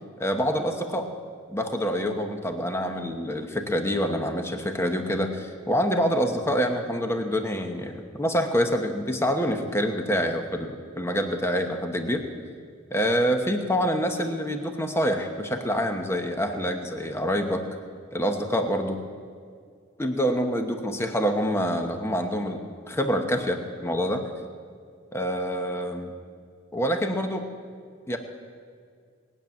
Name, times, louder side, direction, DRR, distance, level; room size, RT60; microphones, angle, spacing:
voice 1, 0.2-1.1 1.5-12.2 12.9-17.6 18.1-19.0 20.0-24.2 25.1-26.1 26.7-27.4 28.1-28.2, equal, 15° left, 5 dB, 1.0 m, -26 dB
19.5 x 7.3 x 9.4 m, 2.1 s
head